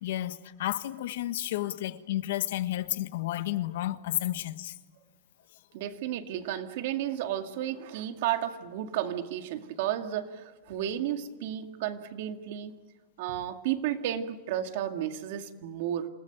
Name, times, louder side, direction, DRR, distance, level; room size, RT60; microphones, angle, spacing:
voice 1, 0.0-4.8, left 14 dB, 75° left, 1.3 m, -31 dB
voice 2, 5.7-12.7 13.2-16.1, right 11 dB, 60° right, 2.1 m, -33 dB
28.0 x 19.0 x 9.0 m
supercardioid pair, 160°, 0 cm